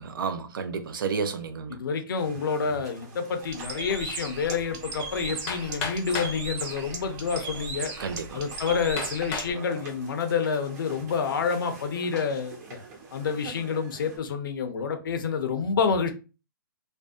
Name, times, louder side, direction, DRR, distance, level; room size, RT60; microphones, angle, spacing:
voice 1, 0.0-1.8 8.0-8.4, right 5 dB, 75° right, 0.5 m, -31 dB
voice 2, 1.7-7.9 8.3-12.8 13.1-16.1, left 5 dB, 70° left, 0.6 m, -28 dB
sound 1, 2.2-14.2, right 4 dB, 50° right, 1.0 m, -46 dB
Bird, 3.4-9.5, right 3 dB, 25° right, 0.5 m, -38 dB
Hammer, 5.5-6.4 7.3-7.4 8.0-8.1 9.0-9.6 10.1-10.6, left 5 dB, 25° left, 0.5 m, -33 dB
2.6 x 2.1 x 2.3 m
hypercardioid pair, 145°, 12 cm